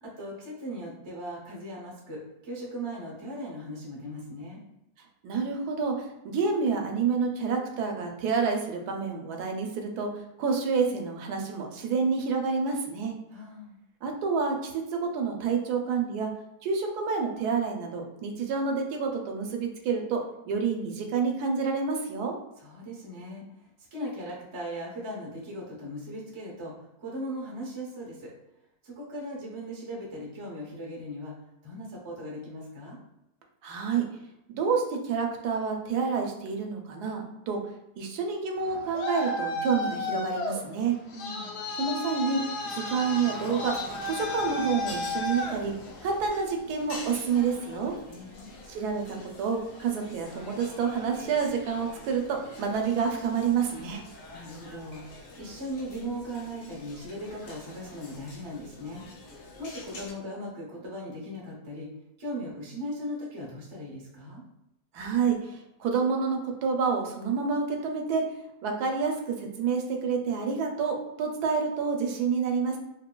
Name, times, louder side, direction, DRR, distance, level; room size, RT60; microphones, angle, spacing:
voice 1, 0.0-4.6 13.3-13.8 22.6-28.3 28.8-31.3 31.6-33.0 41.1-41.6 48.1-48.5 54.3-59.0 59.3-61.9 62.2-64.4, equal, 45° right, -3 dB, 0.4 m, -38 dB
voice 2, 5.2-13.1 14.0-16.3 16.6-22.3 33.6-34.0 34.5-37.6 38.0-41.0 41.8-42.4 42.7-43.7 44.1-45.7 46.0-48.0 48.7-54.0 64.9-68.2 68.6-72.8, right 5 dB, 80° right, 2 dB, 1.1 m, -28 dB
Traffic noise roadway noise, 38.6-46.3, left 2 dB, 80° left, 0.6 m, -33 dB
sound 1, 43.6-60.1, left 2 dB, 65° left, 0.9 m, -47 dB
3.4 x 2.2 x 2.2 m, 0.88 s
omnidirectional pair, 1.7 m